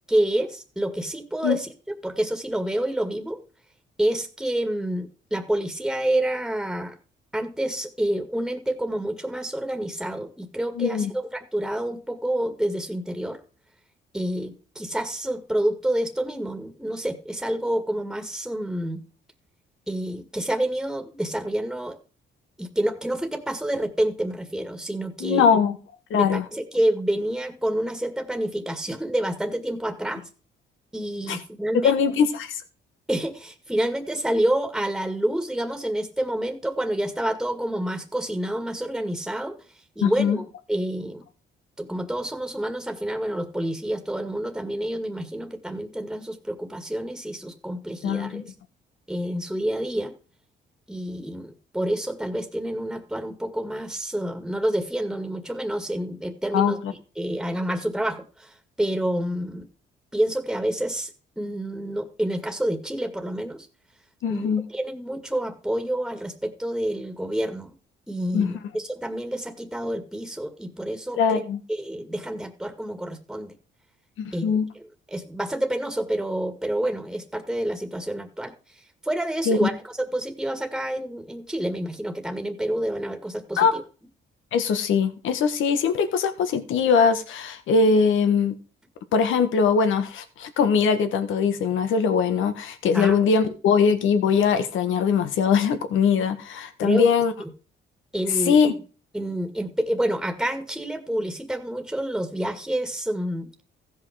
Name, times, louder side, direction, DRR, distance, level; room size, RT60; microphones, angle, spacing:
voice 1, 0.1-3.4 4.0-7.0 7.3-13.4 14.1-19.0 19.9-22.0 22.6-25.5 26.1-30.2 30.9-32.0 33.1-39.6 40.0-41.2 41.8-48.5 49.1-50.1 50.9-56.8 57.2-59.7 60.1-61.1 61.4-63.7 64.3-67.8 68.1-71.4 71.7-73.5 74.3-78.5 79.0-83.8 92.9-93.2 96.8-97.1 97.4-97.5 98.1-98.6 99.1-103.5, right 1 dB, 5° right, 1.9 m, -28 dB
voice 2, 10.8-11.1 25.2-25.8 26.1-26.4 31.3-31.4 31.8-32.6 40.0-40.4 48.0-48.4 56.5-56.9 64.2-64.6 68.3-68.5 71.2-71.6 74.2-74.7 79.5-79.7 83.6-83.7 84.5-88.5 89.1-97.3 98.5-98.7, left 6 dB, 80° left, 1.6 m, -21 dB
15.0 x 5.6 x 5.0 m
cardioid pair, 90°, 20 cm